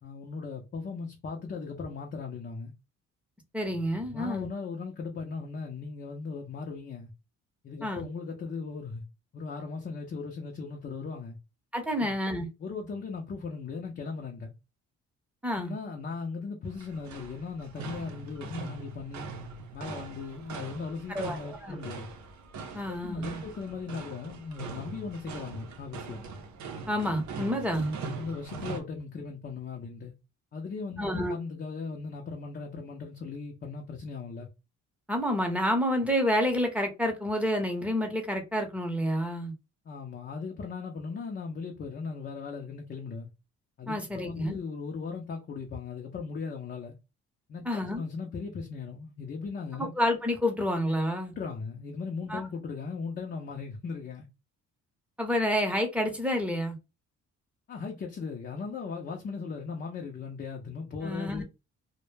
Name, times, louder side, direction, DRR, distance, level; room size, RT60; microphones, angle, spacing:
voice 1, 0.0-2.7 4.1-7.1 7.6-9.0 9.3-11.4 11.9-12.2 12.6-14.5 15.6-19.3 19.7-22.1 23.0-26.2 28.2-30.1 30.5-34.5 39.8-43.3 43.8-47.0 47.5-49.9 51.4-54.3 57.7-61.4, left 4 dB, 35° left, 0.5 m, -38 dB
voice 2, 3.5-4.5 7.8-8.0 11.7-12.5 15.4-15.7 21.1-21.8 22.7-23.4 26.9-27.9 31.0-31.4 35.1-39.5 43.9-44.6 47.6-48.0 49.8-51.3 52.3-52.5 55.2-56.8 61.0-61.4, equal, 5° right, 0.7 m, -29 dB
sound 1, 16.6-28.8, right 4 dB, 70° right, 0.6 m, -42 dB
2.1 x 2.1 x 3.1 m
cardioid pair, 90°, 30 cm